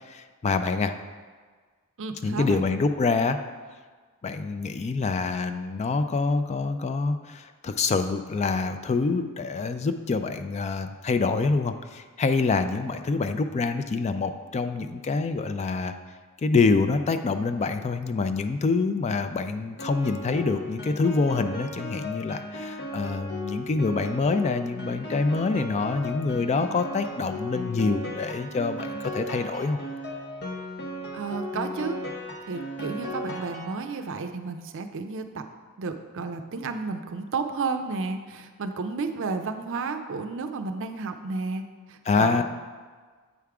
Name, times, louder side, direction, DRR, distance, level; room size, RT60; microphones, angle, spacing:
voice 1, 0.1-0.9 2.2-3.4 4.2-15.9 16.4-29.8 42.1-42.4, left 4 dB, 30° left, 9 dB, 0.3 m, -26 dB
voice 2, 2.0-2.6 31.1-32.0 32.5-35.4 35.8-42.4, right 4 dB, 60° right, 7 dB, 0.5 m, -32 dB
Piano, 19.8-34.2, left 1 dB, 50° left, 0.8 m, -36 dB
8.2 x 3.5 x 4.7 m, 1.5 s
head